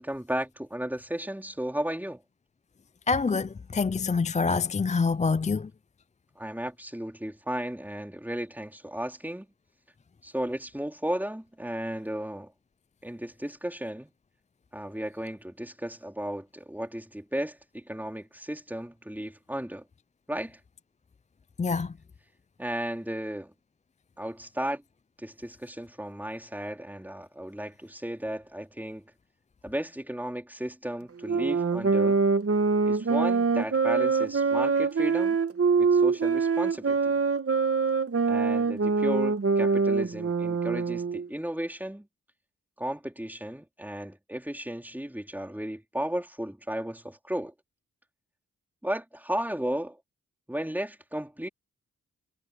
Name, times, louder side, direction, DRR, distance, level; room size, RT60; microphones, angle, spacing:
voice 1, 0.0-2.2 6.4-9.5 10.2-12.5 13.0-14.1 14.7-19.9 20.3-20.6 22.6-23.5 24.2-24.8 25.2-29.1 29.6-32.2 32.9-35.4 35.8-37.2 38.3-42.1 42.8-47.5 48.8-50.0 50.5-51.5, right 1 dB, 5° right, 3.9 m, -34 dB
voice 2, 3.1-5.7 21.6-21.9, left 4 dB, 20° left, 0.4 m, -26 dB
sound 1, 31.2-41.3, right 4 dB, 45° right, 1.9 m, -24 dB
cardioid pair, 65°, 32 cm